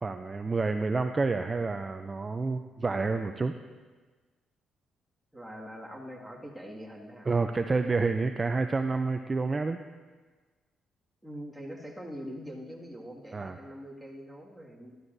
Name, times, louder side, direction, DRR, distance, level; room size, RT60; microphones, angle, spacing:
voice 1, 0.0-3.6 7.3-9.8 13.3-13.6, right 3 dB, 30° right, 7 dB, 0.4 m, -29 dB
voice 2, 5.3-7.3 11.2-15.0, equal, ahead, -3 dB, 2.0 m, -43 dB
13.5 x 12.5 x 2.6 m, 1.4 s
cardioid pair, 90°, 0 cm